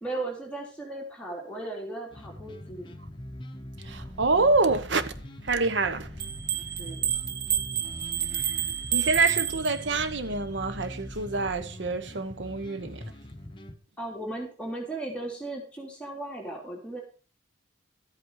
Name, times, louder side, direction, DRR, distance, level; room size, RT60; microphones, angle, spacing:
voice 1, 0.0-2.9 6.8-7.1 14.0-17.0, right 2 dB, 5° left, 3.1 m, -36 dB
sound 1, 2.1-13.8, left 1 dB, 25° left, 1.0 m, -43 dB
sound 2, 3.8-11.8, equal, 30° right, 1.0 m, -46 dB
voice 2, 3.8-5.1 5.4-6.1 8.3-8.6 8.9-13.0, right 3 dB, 80° right, 1.1 m, -26 dB
sound 3, 6.2-10.2, right 10 dB, 55° right, 1.2 m, -30 dB
13.5 x 8.3 x 4.8 m
head